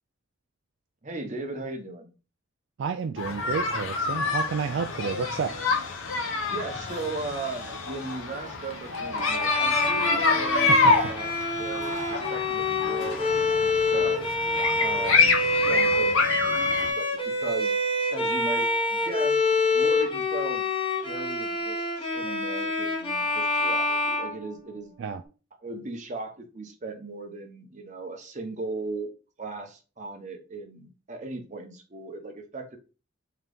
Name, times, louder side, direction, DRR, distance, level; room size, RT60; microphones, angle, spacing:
voice 1, 1.0-2.1 6.5-14.3 14.8-15.4 15.7-17.1 17.4-17.7 18.1-19.4 19.7-20.7 21.0-24.9 25.6-29.1 29.4-32.8, right 2 dB, 40° right, 0.8 m, -37 dB
voice 2, 2.8-5.5 10.7-10.9 25.0-25.2, right 6 dB, 65° right, 0.3 m, -30 dB
sound 1, 3.2-16.9, left 3 dB, 85° left, 0.9 m, -27 dB
Bowed string instrument, 9.2-25.0, left 2 dB, 25° left, 0.9 m, -26 dB
3.7 x 2.9 x 3.4 m
head